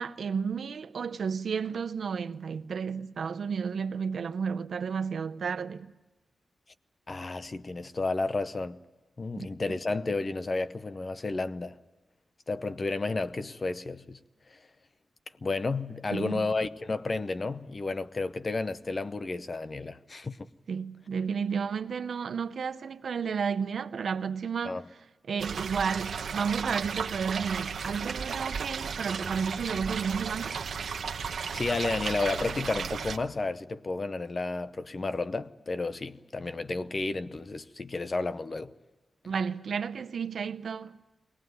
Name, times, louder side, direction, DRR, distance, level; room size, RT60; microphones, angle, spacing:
voice 1, 0.0-5.9 9.4-9.5 16.1-16.5 20.7-24.8 25.3-30.6 39.2-41.0, right 6 dB, 70° right, 0.7 m, -32 dB
voice 2, 7.1-8.8 9.2-11.8 12.5-14.2 14.5-14.6 15.4-20.5 24.6-24.8 31.5-38.7, left 3 dB, 35° left, 0.7 m, -32 dB
sound 1, 25.4-33.2, right 6 dB, 90° right, 1.0 m, -34 dB
23.0 x 18.5 x 9.4 m
wide cardioid pair, 155°, 0 cm